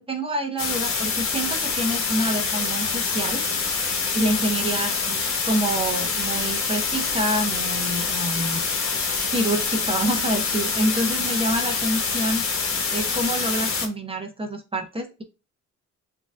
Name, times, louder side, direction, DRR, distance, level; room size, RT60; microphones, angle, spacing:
voice 1, 0.0-3.4 4.1-8.6 9.3-12.4 12.9-15.2, right 1 dB, 20° right, 3 dB, 1.0 m, -27 dB
sound 1, 0.6-13.9, left 4 dB, 45° left, 1.3 m, -26 dB
6.9 x 2.9 x 2.2 m, 0.31 s
cardioid pair, 90°, 30 cm